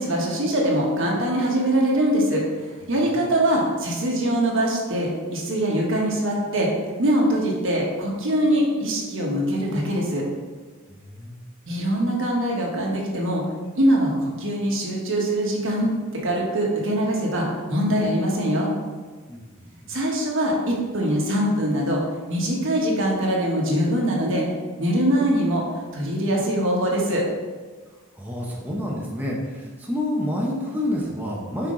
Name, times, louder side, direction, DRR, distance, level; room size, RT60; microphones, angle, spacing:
voice 1, 0.0-6.7 7.0-10.2 11.7-13.4 13.8-15.9 16.2-18.7 19.9-22.0 22.3-24.4 24.8-25.6 25.9-27.2, right 1 dB, 65° right, -2 dB, 1.3 m, -23 dB
voice 2, 10.9-11.4 19.3-20.0 28.2-31.7, left 1 dB, 10° right, -4 dB, 0.7 m, -29 dB
5.9 x 4.5 x 3.8 m, 1.4 s
head